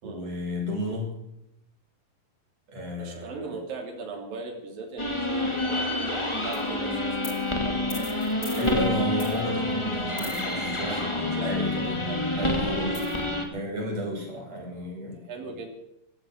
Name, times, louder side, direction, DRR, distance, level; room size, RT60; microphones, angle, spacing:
voice 1, 0.0-1.1 2.7-3.5 8.6-12.0 12.3-13.0 13.5-15.3, equal, 45° right, -1 dB, 7.6 m, -32 dB
voice 2, 3.0-9.0 10.8-12.3 15.2-15.7, right 3 dB, 75° right, 2 dB, 4.7 m, -39 dB
sound 1, 5.0-13.5, left 2 dB, 10° left, 1.5 m, -28 dB
14.5 x 14.0 x 6.5 m, 0.84 s
omnidirectional pair, 4.1 m